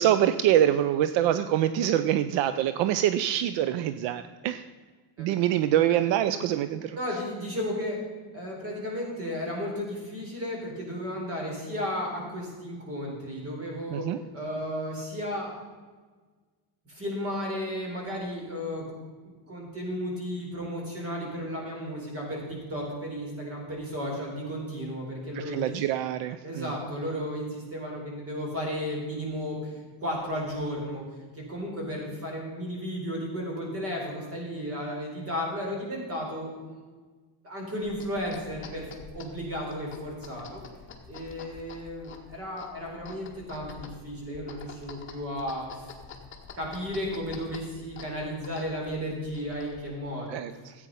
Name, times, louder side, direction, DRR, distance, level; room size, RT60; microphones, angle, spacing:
voice 1, 0.0-4.7 5.2-7.0 13.9-14.2 25.4-26.7 50.3-50.7, right 11 dB, 75° right, 12 dB, 0.6 m, -25 dB
voice 2, 7.0-8.0 8.3-14.0 14.3-15.5 16.8-18.8 19.2-25.7 26.4-31.0 31.3-36.8 37.4-38.9 39.1-40.6 41.1-45.9 46.6-50.4, equal, 30° right, -1 dB, 4.3 m, -34 dB
sound 1, 37.8-50.0, left 5 dB, 25° left, 1.7 m, -47 dB
14.5 x 8.7 x 5.5 m, 1.4 s
cardioid pair, 155°, 45 cm